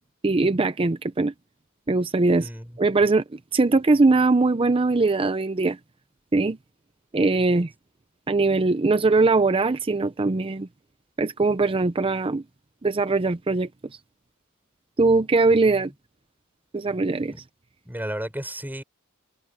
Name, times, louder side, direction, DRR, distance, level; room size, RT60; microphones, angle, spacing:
voice 1, 0.2-1.3 1.9-2.5 2.8-5.8 6.3-6.6 7.1-7.7 8.3-10.7 11.2-12.4 12.8-13.7 15.0-15.9 16.7-17.3, right 3 dB, 25° right, 0.5 m, -21 dB
voice 2, 2.4-2.8 15.7-15.8 17.3-17.4 17.9-18.8, right 1 dB, 10° right, 6.2 m, -33 dB
head